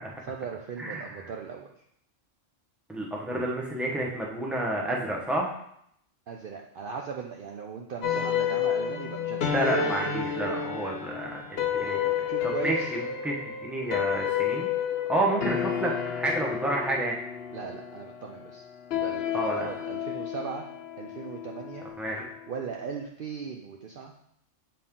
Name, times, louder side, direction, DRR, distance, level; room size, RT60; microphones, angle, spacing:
voice 1, 0.3-1.7 6.3-9.5 12.3-12.9 17.5-18.6 18.9-20.6 21.0-21.8 22.5-24.1, right 6 dB, 55° right, 1 dB, 0.6 m, -38 dB
voice 2, 0.8-1.3 2.9-5.5 9.5-12.1 12.4-13.4 13.6-14.7 15.1-17.2 19.3-19.7 22.0-22.3, right 1 dB, ahead, -2 dB, 0.9 m, -30 dB
sound 1, 8.0-22.5, left 8 dB, 60° left, 0.8 m, -31 dB
7.6 x 4.2 x 3.7 m, 0.72 s
omnidirectional pair, 1.3 m